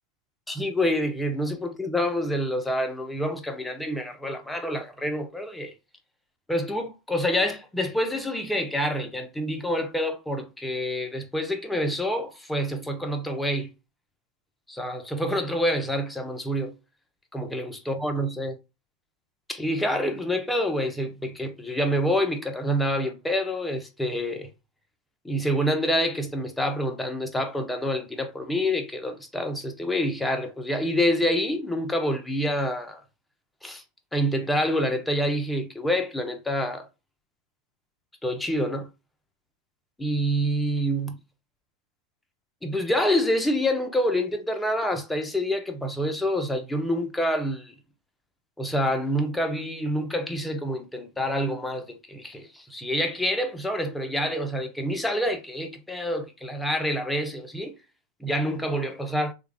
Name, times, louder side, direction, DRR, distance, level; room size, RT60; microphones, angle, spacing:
voice 1, 0.5-5.7 6.5-13.7 14.7-16.7 17.3-18.6 19.5-24.5 25.2-33.0 33.6-33.8 34.1-36.9 38.2-38.9 40.0-41.2 42.6-47.7 48.6-57.7 58.2-59.3, equal, 5° left, 0.7 m, -27 dB
3.2 x 2.4 x 3.2 m
hypercardioid pair, 95°, 0 cm